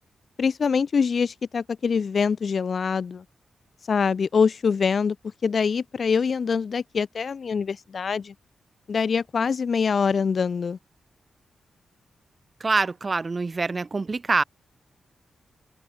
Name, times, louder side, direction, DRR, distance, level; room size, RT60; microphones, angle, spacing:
voice 1, 0.4-3.2 3.9-5.2 5.4-8.3 8.9-10.8, left 5 dB, 55° left, 0.8 m, -24 dB
voice 2, 12.6-14.4, right 3 dB, 35° right, 0.6 m, -25 dB
cardioid pair, 85°, 0 cm